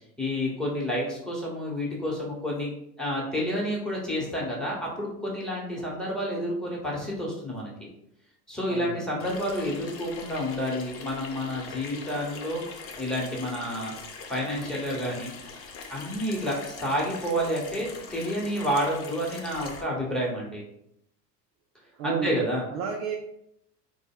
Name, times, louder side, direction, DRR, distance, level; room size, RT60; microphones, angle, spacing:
voice 1, 0.2-2.7 3.0-7.9 8.5-12.6 13.0-13.9 14.3-15.3 15.9-20.6 22.0-22.6, equal, ahead, -4 dB, 1.2 m, -29 dB
voice 2, 8.7-9.1 22.0-22.4 22.7-23.2, right 6 dB, 40° right, 2 dB, 0.4 m, -31 dB
Water tap faucet / Sink (filling or washing), 9.2-19.8, left 5 dB, 30° left, 0.6 m, -42 dB
4.0 x 2.2 x 3.6 m, 0.78 s
figure-of-eight pair, 80°, 49 cm